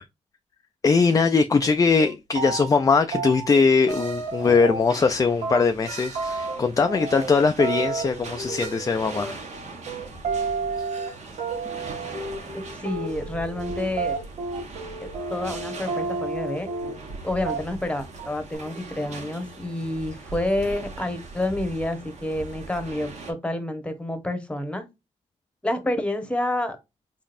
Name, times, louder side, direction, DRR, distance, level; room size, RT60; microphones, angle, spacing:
voice 1, 0.8-9.4, left 4 dB, 25° left, 0.4 m, -21 dB
sound 1, 1.6-1.7 2.0-2.8 3.1-5.1 5.4-17.2 17.5-17.9 18.2-18.6, right 4 dB, 85° right, 2.1 m, -31 dB
sound 2, 3.9-23.3, right 3 dB, 60° right, 1.5 m, -40 dB
voice 2, 12.7-14.2 15.0-16.7 17.2-24.9 25.6-26.8, left 1 dB, 10° left, 1.1 m, -29 dB
3.9 x 3.5 x 2.5 m
cardioid pair, 90°, 14 cm